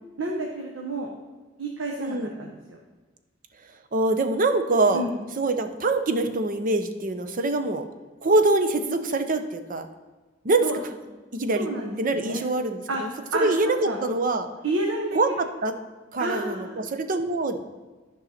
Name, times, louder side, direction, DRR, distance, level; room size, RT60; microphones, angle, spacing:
voice 1, 0.2-1.1 1.6-2.8 4.9-5.2 10.6-10.8 11.5-12.4 12.9-14.0 14.6-15.4 16.2-16.9, right 2 dB, 90° right, 0 dB, 1.0 m, -30 dB
voice 2, 2.0-2.3 3.9-5.0 5.4-7.8 8.2-9.9 10.4-10.7 11.3-11.7 12.0-14.5 15.1-15.3 15.6-15.7 16.1-17.7, right 2 dB, 45° right, 8 dB, 0.7 m, -24 dB
11.0 x 5.5 x 4.2 m, 1.3 s
head